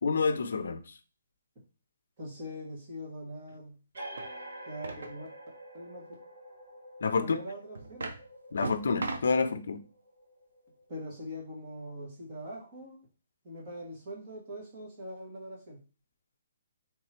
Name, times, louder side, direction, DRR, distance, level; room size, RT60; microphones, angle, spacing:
voice 1, 0.0-0.8 7.0-7.4 8.5-9.8, left 4 dB, 65° left, 11 dB, 0.5 m, -28 dB
voice 2, 2.2-3.8 4.6-5.3 5.7-6.0 7.2-8.1 10.9-13.0 13.4-15.8, equal, 25° right, -3 dB, 1.5 m, -42 dB
sound 1, 3.9-11.2, right 1 dB, 55° right, 1.3 m, -48 dB
sound 2, 4.2-4.3 4.8-5.2 7.1-7.2 7.7-8.2 8.6-9.4, right 3 dB, 80° right, 0.8 m, -37 dB
3.7 x 3.0 x 4.3 m, 0.34 s
hypercardioid pair, 180°, 0 cm